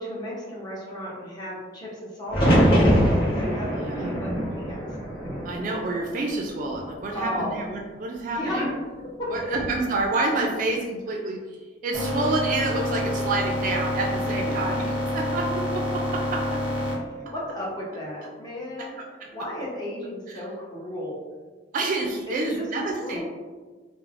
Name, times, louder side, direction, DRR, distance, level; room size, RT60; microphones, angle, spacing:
voice 1, 0.0-4.8 7.1-7.6 8.3-8.7 9.2-9.3 14.5-14.7 17.1-18.9 19.3-21.1 22.3-23.2, left 1 dB, 20° left, -6 dB, 0.7 m, -34 dB
sound 1, 2.3-6.3 6.7-7.5 9.3-9.8, equal, 55° left, 1.0 m, -23 dB
voice 2, 3.7-4.1 5.4-8.6 9.3-11.4 11.8-14.8 15.1-16.5 17.3-17.4 18.8-19.3 20.3-20.4 21.7-23.2, right 2 dB, 45° right, 1 dB, 0.3 m, -28 dB
sound 2, 11.9-16.9, left 1 dB, 5° right, 0.8 m, -27 dB
3.1 x 2.0 x 2.4 m, 1.4 s
head